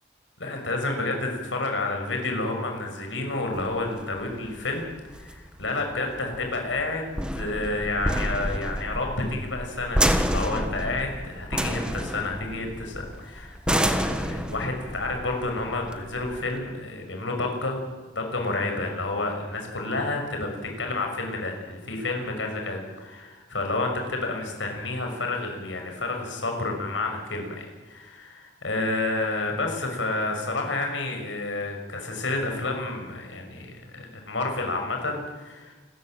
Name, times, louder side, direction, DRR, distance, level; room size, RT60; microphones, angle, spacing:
voice 1, 0.4-17.9 18.1-35.7, left 2 dB, 85° left, 3 dB, 6.2 m, -30 dB
sound 1, 3.6-16.6, equal, 5° right, 1.4 m, -29 dB
28.5 x 14.5 x 9.0 m, 1.2 s
head